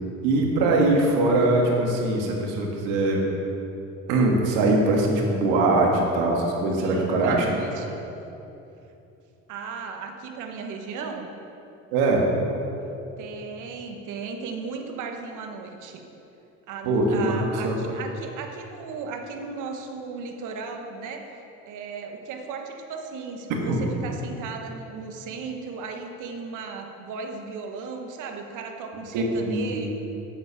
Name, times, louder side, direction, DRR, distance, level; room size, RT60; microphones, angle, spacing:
voice 1, 0.2-3.2 4.1-7.5 11.9-12.2 16.8-17.8 23.7-23.8 29.1-29.9, right 2 dB, 90° right, 0 dB, 1.6 m, -22 dB
voice 2, 6.8-8.0 9.5-11.3 13.2-16.0 16.7-29.9, right 5 dB, 70° right, 3 dB, 1.2 m, -36 dB
7.8 x 7.2 x 5.7 m, 2.9 s
supercardioid pair, 95°, 32 cm